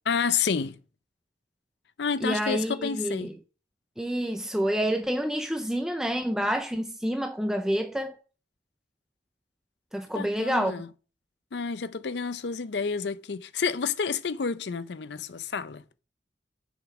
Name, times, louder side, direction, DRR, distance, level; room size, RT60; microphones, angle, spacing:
voice 1, 0.1-0.8 2.0-3.3 10.1-10.9 11.5-15.8, left 5 dB, 65° left, 0.5 m, -29 dB
voice 2, 2.2-3.3 4.0-8.1 9.9-10.8, equal, 5° right, 0.4 m, -28 dB
6.8 x 5.2 x 6.0 m
head